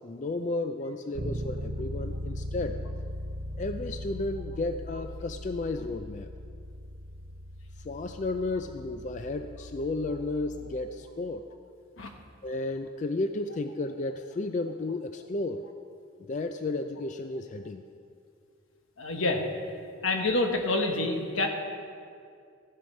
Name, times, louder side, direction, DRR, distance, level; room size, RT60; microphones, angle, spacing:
voice 1, 0.0-2.8 3.6-6.3 7.8-11.5 12.4-15.6 16.2-17.9, left 2 dB, 35° left, 7 dB, 0.3 m, -33 dB
Bass guitar, 1.1-11.0, equal, 65° right, 0.9 m, -39 dB
voice 2, 19.0-19.5 20.0-21.5, left 2 dB, 80° left, 3 dB, 1.3 m, -27 dB
14.0 x 7.7 x 5.3 m, 2.3 s
head